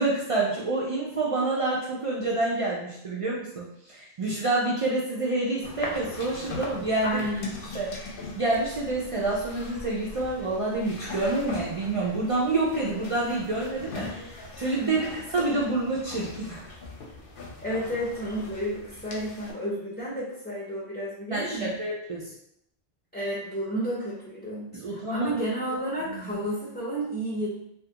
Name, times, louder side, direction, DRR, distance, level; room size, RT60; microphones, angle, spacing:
voice 1, 0.0-7.2 7.7-16.6 21.3-22.3 24.7-25.3 26.2-26.3, right 2 dB, 60° right, -5 dB, 0.3 m, -28 dB
sound 1, 5.6-19.5, left 3 dB, 65° left, 0.7 m, -40 dB
voice 2, 7.0-7.5 14.8-15.1 17.6-21.7 23.1-27.5, right 1 dB, 15° left, -7 dB, 0.4 m, -31 dB
2.4 x 2.3 x 2.8 m, 0.74 s
omnidirectional pair, 1.1 m